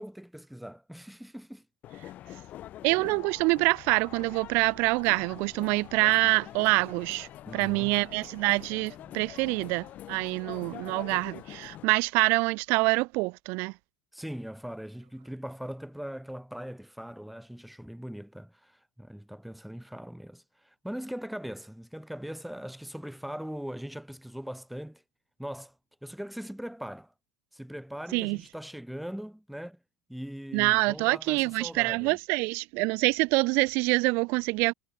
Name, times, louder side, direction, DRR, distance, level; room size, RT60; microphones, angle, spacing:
voice 1, 0.0-1.7 7.5-8.0 9.0-9.3 14.1-25.0 25.4-25.7 26.0-27.1 27.5-29.8 30.1-32.2, equal, ahead, 2.9 m, -40 dB
sound 1, 1.8-11.8, left 13 dB, 40° left, 2.8 m, -45 dB
voice 2, 2.8-13.7 28.1-28.4 30.5-34.7, right 28 dB, 55° right, 0.6 m, -26 dB
supercardioid pair, 130°, 4 cm